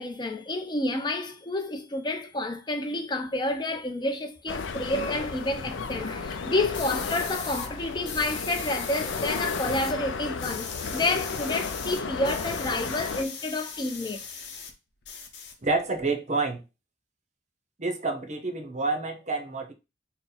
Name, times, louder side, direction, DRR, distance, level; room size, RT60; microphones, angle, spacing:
voice 1, 0.0-14.3, left 2 dB, 25° left, 0.5 m, -29 dB
sound 1, 4.5-13.2, left 4 dB, 85° left, 0.4 m, -34 dB
sound 2, 6.7-7.7 8.0-9.9 10.2-14.7 15.0-16.0, left 6 dB, 65° left, 0.8 m, -39 dB
voice 2, 15.6-16.6 17.8-19.7, right 3 dB, 40° right, 0.7 m, -28 dB
3.8 x 2.1 x 4.2 m
head